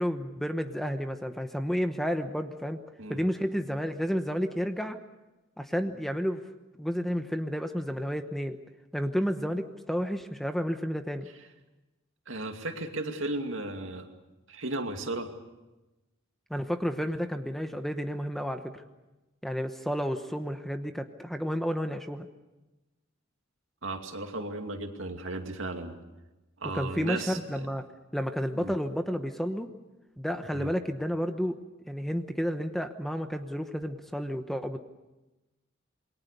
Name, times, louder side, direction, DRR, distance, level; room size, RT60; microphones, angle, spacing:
voice 1, 0.0-2.8 3.1-5.0 5.6-6.4 6.8-8.6 8.9-11.3 16.5-18.8 19.4-22.3 26.7-27.9 28.1-29.7 30.2-31.6 31.9-34.8, equal, ahead, 7 dB, 1.0 m, -31 dB
voice 2, 12.3-14.1 14.5-15.3 23.8-26.0 26.6-27.7 28.5-28.7 30.5-30.7, right 2 dB, 65° right, 4 dB, 2.6 m, -35 dB
28.0 x 22.0 x 6.8 m, 1.1 s
head